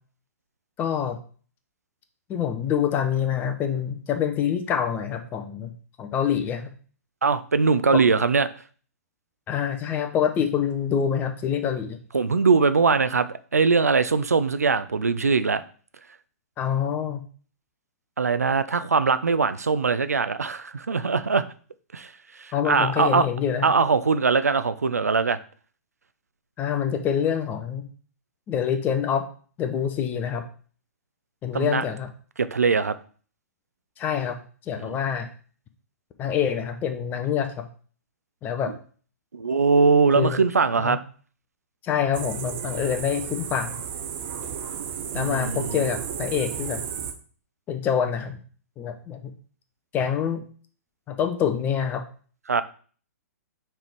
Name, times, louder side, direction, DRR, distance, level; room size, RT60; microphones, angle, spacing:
voice 1, 0.8-1.2 2.3-5.7 6.0-6.7 7.9-8.0 9.5-12.0 16.6-17.2 22.5-23.7 26.6-27.9 28.5-29.3 29.6-30.4 31.4-32.1 34.0-34.4 34.7-35.3 36.2-37.7 38.4-38.7 40.2-40.4 40.8-41.0 41.8-43.7 45.1-46.8 47.7-48.4 48.8-49.3 49.9-50.4 51.1-52.0, left 8 dB, 20° left, 7 dB, 0.7 m, -26 dB
voice 2, 7.2-8.5 12.1-13.3 13.5-15.6 18.2-21.4 21.9-22.1 22.4-23.3 23.6-25.4 31.5-31.8 32.4-33.0 34.8-35.0 39.3-41.0 45.2-45.8 52.5-52.6, right 4 dB, 75° right, 12 dB, 0.5 m, -21 dB
sound 1, 42.1-47.1, right 8 dB, 40° right, 0.7 m, -33 dB
5.9 x 3.5 x 4.5 m, 0.42 s
figure-of-eight pair, 115°, 9 cm